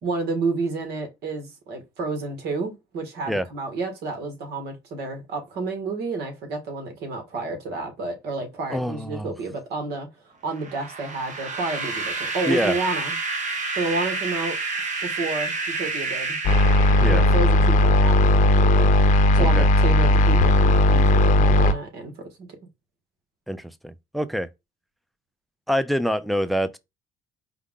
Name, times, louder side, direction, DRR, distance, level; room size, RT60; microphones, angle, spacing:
voice 1, 0.0-10.1 10.4-13.2 13.7-14.6 15.0-16.4 17.0-18.9 19.3-22.5, right 3 dB, 75° right, 1.8 m, -30 dB
voice 2, 8.7-9.3 12.5-12.7 17.0-17.2 19.4-19.7 23.5-24.5 25.7-26.8, equal, ahead, 0.4 m, -25 dB
sound 1, 10.5-17.6, right 3 dB, 45° right, 1.0 m, -29 dB
sound 2, 16.4-21.7, left 1 dB, 50° left, 0.7 m, -17 dB
4.6 x 2.4 x 3.7 m
cardioid pair, 110°, 17 cm